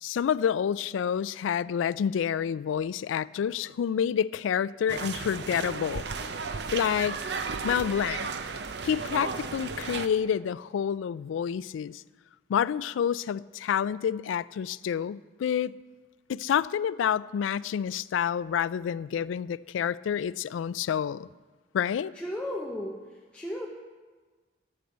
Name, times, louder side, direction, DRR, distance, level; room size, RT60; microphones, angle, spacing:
voice 1, 0.0-6.0 6.7-7.2 7.6-8.3 8.8-12.0 12.5-15.8 16.3-21.3 21.7-22.1, left 8 dB, 90° left, 0.3 m, -28 dB
sound 1, 4.9-10.1, right 4 dB, 60° right, 0.6 m, -34 dB
voice 2, 22.1-23.7, left 1 dB, 5° left, 0.8 m, -35 dB
12.0 x 6.7 x 8.0 m
head